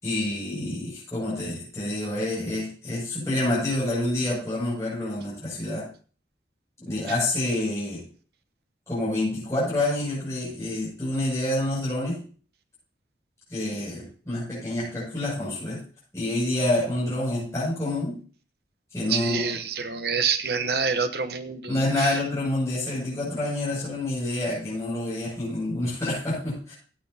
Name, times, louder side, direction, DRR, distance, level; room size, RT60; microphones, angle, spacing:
voice 1, 0.0-5.9 6.8-8.0 8.9-12.2 13.5-15.8 16.1-18.1 18.9-19.4 21.7-26.7, left 1 dB, 15° left, -8 dB, 6.7 m, -27 dB
voice 2, 19.1-22.2, right 5 dB, 60° right, 9 dB, 1.0 m, -27 dB
15.5 x 8.9 x 2.8 m, 0.41 s
head